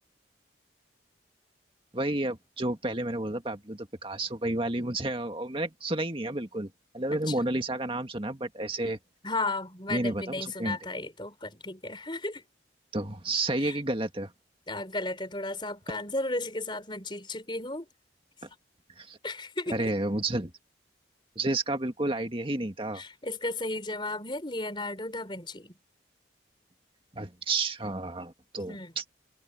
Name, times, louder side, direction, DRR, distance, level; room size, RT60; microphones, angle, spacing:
voice 1, 1.9-9.0 9.9-10.8 12.9-14.3 19.0-19.2 19.7-20.5 21.4-23.0 27.1-29.0, right 2 dB, 25° right, 1.9 m, -31 dB
voice 2, 7.1-7.4 9.2-12.4 13.6-13.8 14.7-17.9 19.2-19.9 22.9-25.7 28.7-28.9, left 2 dB, 25° left, 4.4 m, -34 dB
head